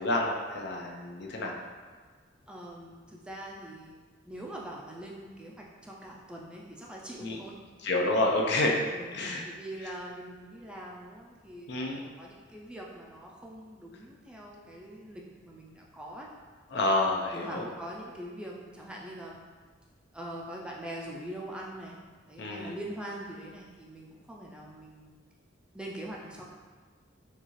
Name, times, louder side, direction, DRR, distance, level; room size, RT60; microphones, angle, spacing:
voice 1, 0.0-1.5 7.2-7.4 7.8-8.8 9.1-9.4 11.7-12.0 16.7-17.7 22.4-22.8, left 2 dB, 60° left, 0 dB, 0.6 m, -28 dB
voice 2, 2.5-3.9 4.3-7.6 8.8-9.1 9.4-16.3 16.7-16.9 17.3-19.4 20.1-22.0 22.3-25.1 25.7-26.4, right 1 dB, 5° right, -3 dB, 0.4 m, -43 dB
6.4 x 2.4 x 3.1 m, 1.5 s
head